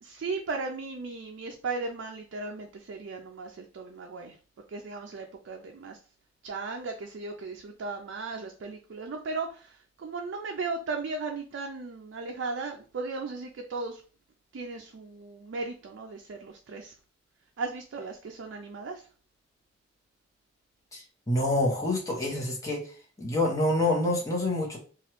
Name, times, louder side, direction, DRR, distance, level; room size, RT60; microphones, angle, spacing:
voice 1, 0.0-4.4 4.7-6.0 6.4-14.0 14.5-16.9 17.6-19.1, right 3 dB, 70° right, 3 dB, 0.4 m, -36 dB
voice 2, 20.9-22.8 23.2-24.8, left 1 dB, 15° left, -3 dB, 0.9 m, -27 dB
3.0 x 2.3 x 2.9 m, 0.39 s
head